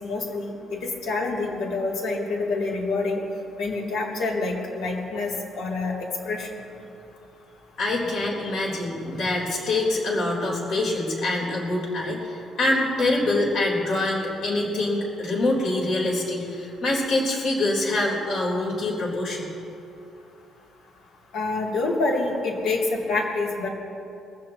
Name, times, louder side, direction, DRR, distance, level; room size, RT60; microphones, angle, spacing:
voice 1, 0.0-3.2 3.6-6.7 21.3-23.7, left 3 dB, 65° left, -2 dB, 2.8 m, -27 dB
voice 2, 7.8-19.5, left 2 dB, 50° left, -2 dB, 3.8 m, -25 dB
21.5 x 15.0 x 3.0 m, 2.7 s
cardioid pair, 175°, 0 cm